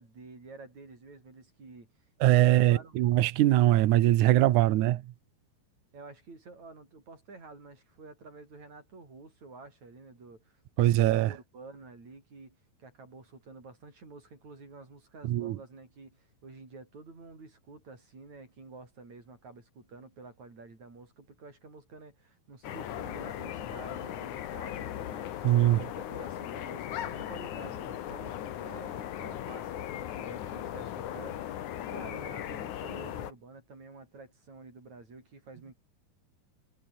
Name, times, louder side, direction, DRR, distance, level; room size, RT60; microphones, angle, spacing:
voice 1, 0.0-2.1 2.4-3.0 5.9-35.7, right 3 dB, 40° right, 8.8 m, -50 dB
voice 2, 2.2-5.0 10.8-11.3 15.2-15.6 25.4-25.8, right 14 dB, 85° right, 1.7 m, -22 dB
sound 1, 22.6-33.3, left 11 dB, 60° left, 2.3 m, -38 dB
omnidirectional pair, 5.0 m